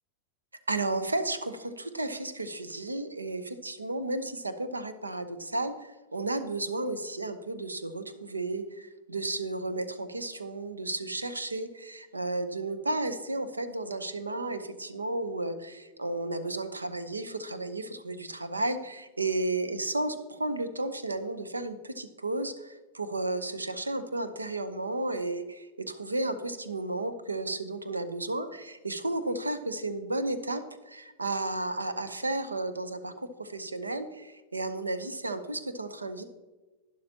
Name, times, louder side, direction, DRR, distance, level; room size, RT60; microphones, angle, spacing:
voice 1, 0.7-36.2, right 2 dB, 80° right, 11 dB, 0.9 m, -33 dB
11.5 x 11.0 x 2.9 m, 1.2 s
figure-of-eight pair, 90°, 0 cm